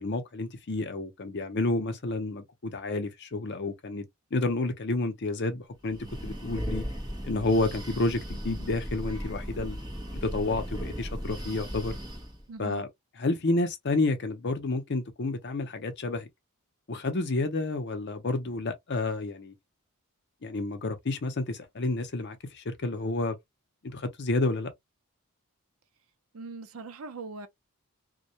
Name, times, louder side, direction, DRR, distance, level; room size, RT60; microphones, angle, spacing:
voice 1, 0.0-4.1 4.3-6.8 7.2-9.8 10.2-11.9 12.6-12.9 13.1-16.3 16.9-19.5 20.4-23.4 23.8-24.7, left 2 dB, 50° left, 0.6 m, -30 dB
Breathing, 5.8-12.4, equal, 20° right, 0.8 m, -37 dB
voice 2, 12.5-12.8 26.3-27.5, right 3 dB, 70° right, 0.5 m, -41 dB
2.2 x 2.1 x 2.7 m
head